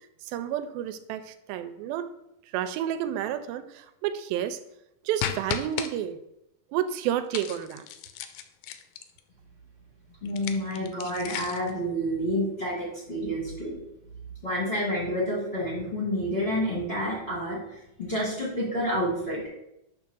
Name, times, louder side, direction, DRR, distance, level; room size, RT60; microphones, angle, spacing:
voice 1, 0.2-2.1 2.5-4.6 5.1-6.2 6.7-7.9, right 10 dB, 85° right, 11 dB, 2.3 m, -30 dB
sound 1, 5.2-5.9 7.3-9.2 10.3-11.7, left 10 dB, 90° left, 2.5 m, -35 dB
voice 2, 10.2-13.8 14.4-19.4, equal, 30° left, -7 dB, 1.1 m, -29 dB
6.3 x 3.5 x 6.1 m, 0.83 s
omnidirectional pair, 4.3 m